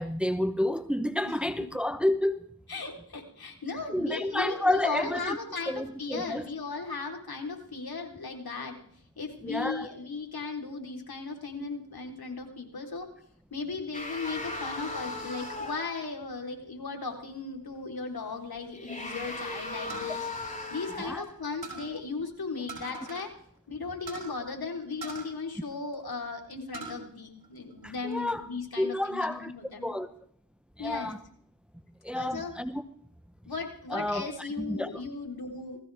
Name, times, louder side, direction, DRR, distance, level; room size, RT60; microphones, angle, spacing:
voice 1, 0.0-2.5 3.9-5.4 5.7-6.5 9.4-9.9 21.0-21.2 27.8-28.5 28.8-29.5 29.8-30.1 30.8-31.2 32.0-32.8 33.9-35.0, left 1 dB, 5° right, 1.0 m, -30 dB
voice 2, 2.7-8.8 9.2-13.1 13.5-20.3 20.7-23.3 23.7-29.9 30.8-31.1 32.1-32.5 33.5-35.8, left 4 dB, 60° left, 4.0 m, -37 dB
sound 1, 13.9-16.0 18.7-21.4, left 2 dB, 20° left, 4.9 m, -37 dB
sound 2, 19.9-21.3 21.6-22.0 22.7-23.3 23.6-23.7 24.1-24.3 25.0-26.1 26.5-27.0 27.4-28.2, right 4 dB, 60° right, 5.6 m, -42 dB
20.5 x 16.0 x 3.6 m
cardioid pair, 45°, 40 cm